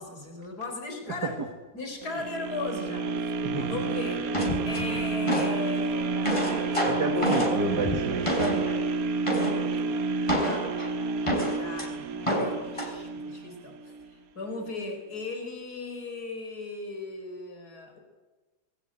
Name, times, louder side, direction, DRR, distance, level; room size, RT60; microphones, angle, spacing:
voice 1, 0.0-1.4 1.7-4.3 4.7-6.7 7.2-7.5 9.1-10.1 10.4-10.8 11.6-14.0 14.3-18.0, left 3 dB, 70° left, 5 dB, 5.2 m, -37 dB
sound 1, 2.0-14.1 14.6-14.7, right 4 dB, 60° right, 1.4 m, -30 dB
voice 2, 3.4-3.8 6.8-8.6, right 3 dB, 75° right, 2 dB, 3.1 m, -30 dB
sound 2, 4.3-5.6 6.0-8.8 9.3-9.7 10.3-11.9 12.3-12.9, equal, 15° left, 5.3 m, -28 dB
26.5 x 22.0 x 8.8 m, 1.2 s
omnidirectional pair, 1.8 m